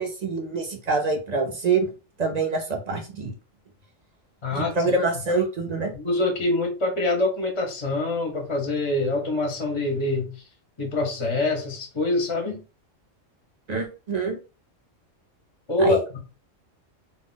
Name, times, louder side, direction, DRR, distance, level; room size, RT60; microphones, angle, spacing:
voice 1, 0.0-1.9 2.2-3.3 4.5-5.9 13.7-14.4 15.8-16.2, right 3 dB, 55° right, 0.4 m, -26 dB
voice 2, 4.4-4.7 5.9-10.3 10.8-12.6 15.7-16.2, left 2 dB, 35° left, 0.5 m, -25 dB
2.3 x 2.1 x 3.7 m
omnidirectional pair, 1.3 m